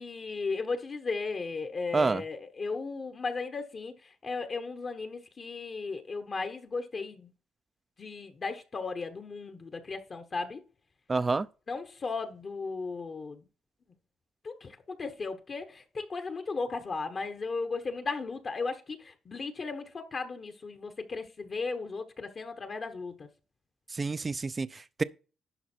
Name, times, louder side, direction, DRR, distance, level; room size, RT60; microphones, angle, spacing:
voice 1, 0.0-3.9 4.2-7.3 8.0-10.6 11.7-13.4 14.4-23.1, left 4 dB, 40° left, 1.1 m, -36 dB
voice 2, 11.1-11.5 23.9-25.0, right 3 dB, 25° right, 0.6 m, -28 dB
11.5 x 5.2 x 4.4 m
cardioid pair, 90°, 0 cm